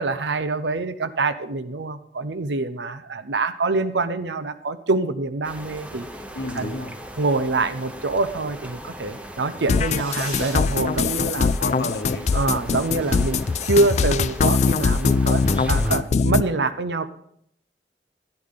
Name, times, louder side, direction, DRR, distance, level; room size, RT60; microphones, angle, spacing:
voice 1, 0.0-6.1 6.6-6.8 7.2-11.5 12.3-17.1, right 3 dB, 85° right, 11 dB, 0.7 m, -25 dB
sound 1, 5.4-16.0, equal, 5° right, 0.9 m, -36 dB
voice 2, 6.3-6.9 11.3-12.3, left 2 dB, 75° left, 6 dB, 1.2 m, -31 dB
sound 2, 9.7-16.4, left 5 dB, 40° left, 0.3 m, -21 dB
Fireworks, 9.7-10.7 11.0-11.6 11.9-12.0 12.2-12.3 12.6-12.7 12.9-14.5, right 3 dB, 35° right, 2.6 m, -40 dB
12.0 x 10.5 x 3.8 m, 0.70 s
head